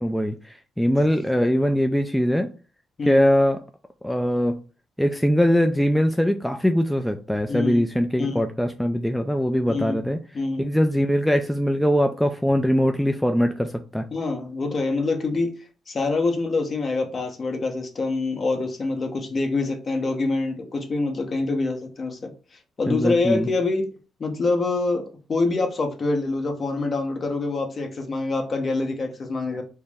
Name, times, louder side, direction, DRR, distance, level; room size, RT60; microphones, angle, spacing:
voice 1, 0.0-2.5 3.1-3.6 4.0-4.6 5.0-10.2 10.6-14.1 22.9-23.5, equal, 5° left, 0.3 m, -22 dB
voice 2, 7.5-7.8 8.2-8.4 9.7-10.0 10.3-10.7 14.1-22.3 22.8-23.9 24.2-29.6, left 3 dB, 40° left, 1.0 m, -25 dB
4.5 x 2.1 x 3.5 m
cardioid pair, 90°, 0 cm